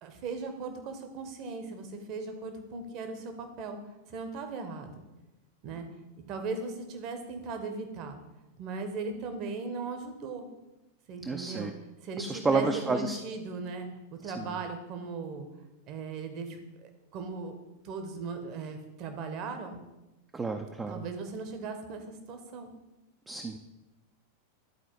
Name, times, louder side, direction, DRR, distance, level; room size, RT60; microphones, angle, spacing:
voice 1, 0.0-3.8 4.1-4.9 5.6-5.9 6.3-8.1 8.6-10.4 11.1-11.7 12.0-15.5 15.9-17.5 17.8-19.8 20.9-22.7, right 4 dB, 40° right, 6 dB, 1.1 m, -38 dB
voice 2, 11.2-11.7 12.2-13.2 14.4-14.6 20.3-21.0 23.3-23.6, right 3 dB, 15° right, 5 dB, 0.5 m, -30 dB
11.5 x 4.3 x 4.6 m, 1.0 s
figure-of-eight pair, 90°, 0 cm